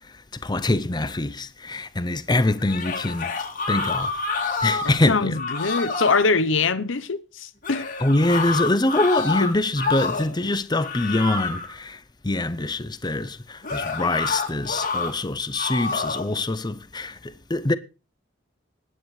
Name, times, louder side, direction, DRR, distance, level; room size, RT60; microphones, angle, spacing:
voice 1, 0.4-3.3 3.7-4.1 4.6-5.4 8.0-12.0 12.2-17.1 17.5-17.7, left 2 dB, 20° left, 0.7 m, -24 dB
sound 1, 2.6-5.0 5.3-6.3 7.6-10.4 10.8-11.7 13.6-15.1 15.6-16.3, left 4 dB, 45° left, 2.2 m, -28 dB
voice 2, 4.8-7.9 9.4-9.5, left 4 dB, 80° left, 0.8 m, -23 dB
20.0 x 9.5 x 3.2 m
head